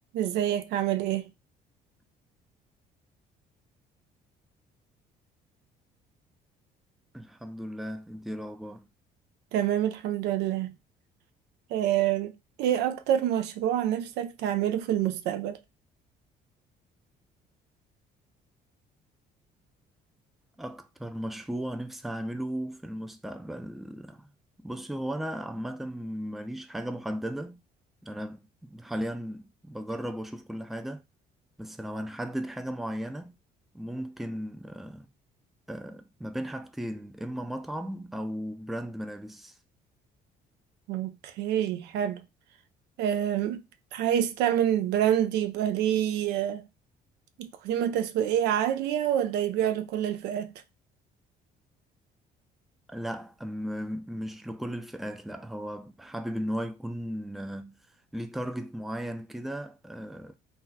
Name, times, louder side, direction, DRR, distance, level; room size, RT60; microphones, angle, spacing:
voice 1, 0.1-1.2 9.5-10.7 11.7-15.6 40.9-42.2 43.0-43.6 43.9-46.7 47.4-50.5, right 10 dB, 90° right, 0.4 m, -27 dB
voice 2, 7.1-8.9 20.6-24.3 24.6-27.6 28.0-31.0 31.6-33.4 33.7-35.1 35.7-39.6 52.9-57.8 58.1-60.3, equal, ahead, 0.3 m, -36 dB
2.7 x 2.2 x 3.8 m
cardioid pair, 110°, 17 cm